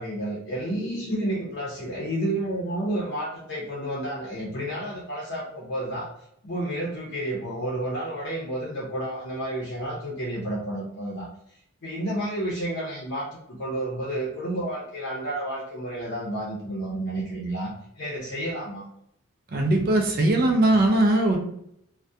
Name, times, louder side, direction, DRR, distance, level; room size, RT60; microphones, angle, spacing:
voice 1, 0.0-6.1 6.4-11.3 11.8-18.9, right 1 dB, 55° left, -4 dB, 0.6 m, -31 dB
voice 2, 19.5-21.4, right 1 dB, 45° right, 2 dB, 0.4 m, -20 dB
2.3 x 2.1 x 2.6 m, 0.73 s
head